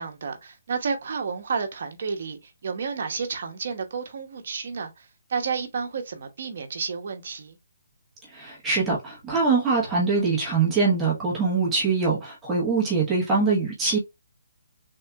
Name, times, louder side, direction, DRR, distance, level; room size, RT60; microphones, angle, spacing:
voice 1, 0.0-7.6, right 5 dB, 55° right, 1.0 m, -31 dB
voice 2, 8.3-14.0, right 4 dB, 10° right, 1.1 m, -23 dB
3.7 x 2.6 x 3.4 m
hypercardioid pair, 165°, 0 cm